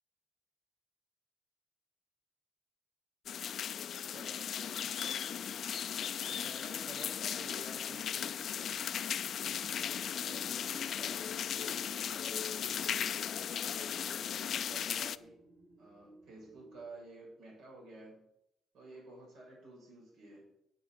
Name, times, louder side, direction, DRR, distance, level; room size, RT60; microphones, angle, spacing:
sound 1, 3.3-15.2, left 9 dB, 60° left, 0.4 m, -37 dB
voice 1, 4.1-4.8 6.1-8.8 10.2-13.1 14.2-15.4 15.8-18.3 18.7-20.5, right 2 dB, 80° right, -2 dB, 5.5 m, -52 dB
sound 2, 9.4-16.8, right 2 dB, 50° right, 4.7 m, -57 dB
8.2 x 8.1 x 8.7 m, 0.76 s
cardioid pair, 90°, 0 cm